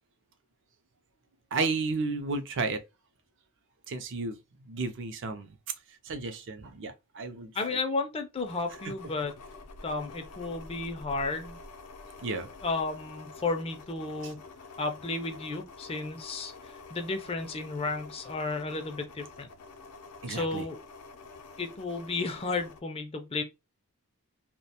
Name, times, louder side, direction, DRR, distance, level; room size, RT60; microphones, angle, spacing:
voice 1, 1.5-2.8 3.9-4.4 4.7-5.6 5.9-7.8 8.8-8.9 12.2-12.5 14.2-14.3 20.2-20.6, right 3 dB, 55° right, 0.5 m, -33 dB
voice 2, 7.6-9.3 9.8-11.6 12.6-14.4 14.8-19.5 20.3-20.8 21.6-23.4, left 3 dB, 25° left, 0.4 m, -33 dB
sound 1, 8.3-22.8, left 3 dB, 90° left, 0.5 m, -48 dB
2.3 x 2.1 x 2.8 m
head